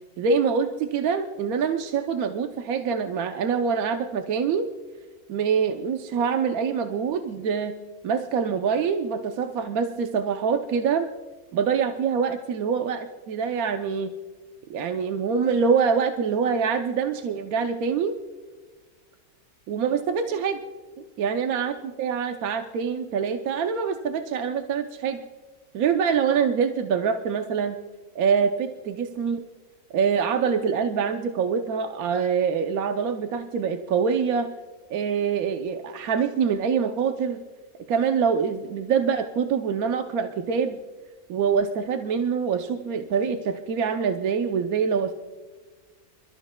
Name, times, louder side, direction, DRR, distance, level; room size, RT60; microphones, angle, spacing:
voice 1, 0.2-4.7 5.3-7.8 8.0-11.1 11.5-14.1 14.7-18.1 19.7-20.6 21.0-21.7 22.0-25.2 25.7-27.8 28.1-29.4 29.9-34.5 34.9-37.4 37.9-40.8 41.3-45.1, right 6 dB, 70° right, 5 dB, 1.1 m, -25 dB
27.5 x 13.5 x 2.2 m, 1.4 s
omnidirectional pair, 1.6 m